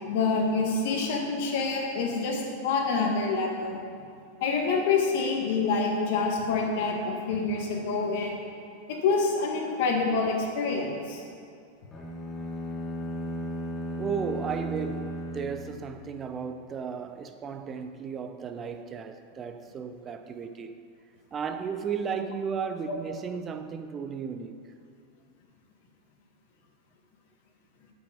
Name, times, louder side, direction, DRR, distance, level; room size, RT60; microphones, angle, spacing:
voice 1, 0.0-3.8 4.4-8.4 8.9-11.2 22.9-23.0, left 4 dB, 65° left, 1.6 m, -27 dB
sound 1, 11.9-16.3, equal, 20° left, 1.3 m, -35 dB
voice 2, 14.0-20.8 21.3-24.6, right 6 dB, 25° right, 0.6 m, -34 dB
8.4 x 6.3 x 5.1 m
hypercardioid pair, 110°, 0 cm